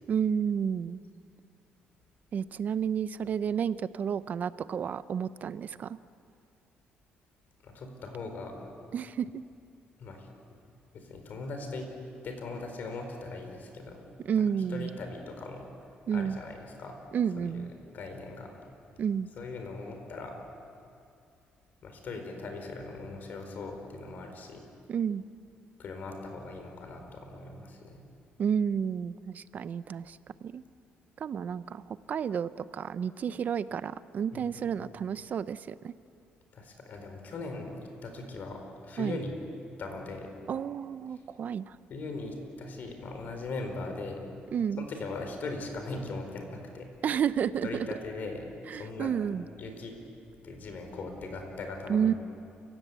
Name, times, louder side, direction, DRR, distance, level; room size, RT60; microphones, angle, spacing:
voice 1, 0.1-1.0 2.3-6.0 8.9-9.4 14.3-15.0 16.1-16.4 17.1-17.7 19.0-19.3 24.9-25.2 28.4-30.6 31.2-35.9 39.0-39.2 40.5-41.6 44.5-44.8 47.0-47.7 48.7-49.4 51.9-52.1, right 7 dB, 50° right, 15 dB, 0.7 m, -31 dB
voice 2, 7.6-8.5 10.0-10.3 10.9-11.9 12.2-14.0 14.4-14.5 14.7-15.7 16.1-16.9 17.4-17.7 17.9-18.5 19.4-20.3 21.8-24.6 25.8-28.0 34.3-34.6 36.5-39.4 39.8-40.3 41.9-44.3 44.8-46.9 47.6-49.2 49.6-50.0 50.4-52.2, left 3 dB, 55° left, 4 dB, 4.6 m, -39 dB
29.5 x 16.5 x 8.3 m, 2.4 s
cardioid pair, 120°, 4 cm